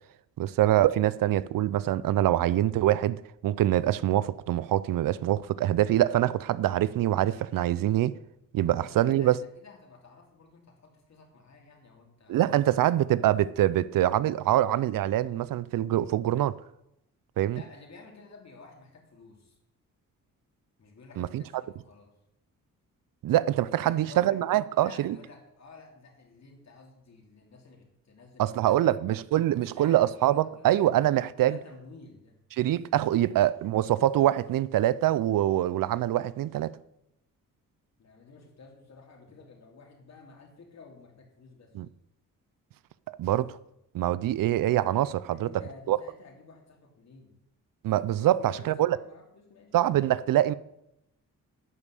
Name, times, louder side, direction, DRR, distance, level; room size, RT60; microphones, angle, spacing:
voice 1, 0.4-8.2 8.5-9.4 12.3-16.5 17.4-17.6 21.2-21.4 23.2-25.2 28.4-31.6 32.6-36.8 41.7-41.9 43.2-43.5 43.9-45.5 45.9-46.0 47.8-49.0 49.7-50.5, right 13 dB, 75° right, 0.5 m, -24 dB
voice 2, 8.6-12.6 17.5-19.6 20.8-22.1 23.7-29.0 29.3-30.7 31.4-32.4 32.8-33.3 33.7-33.9 38.0-41.7 45.2-47.3 48.1-49.7, left 4 dB, 50° left, 3.2 m, -52 dB
11.0 x 5.4 x 8.4 m
cardioid pair, 90°, 33 cm